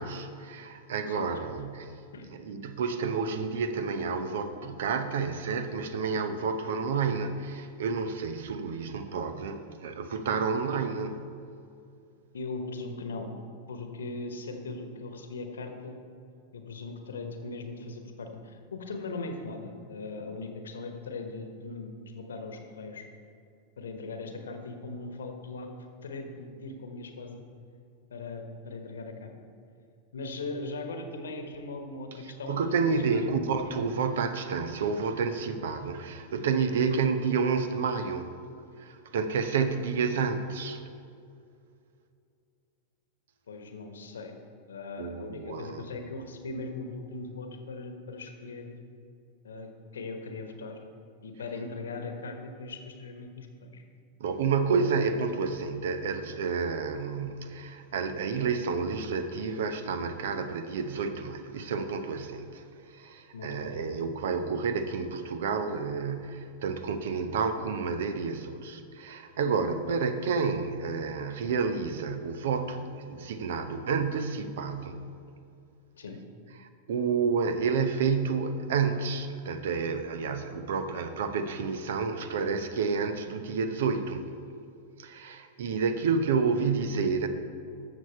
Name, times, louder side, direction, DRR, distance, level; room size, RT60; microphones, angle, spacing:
voice 1, 0.0-2.0 2.3-11.2 32.5-38.3 38.8-40.8 45.0-45.9 54.2-75.1 76.6-84.3 85.0-87.3, right 5 dB, 60° right, 0.7 m, -30 dB
voice 2, 12.3-13.3 13.7-16.0 16.5-23.1 23.8-27.4 28.1-29.3 30.1-33.3 43.5-44.3 44.7-48.8 49.4-50.8 51.2-53.8 63.3-63.7 75.9-76.2, left 3 dB, 65° left, 1.1 m, -39 dB
13.5 x 6.9 x 4.4 m
figure-of-eight pair, 90°, 0 cm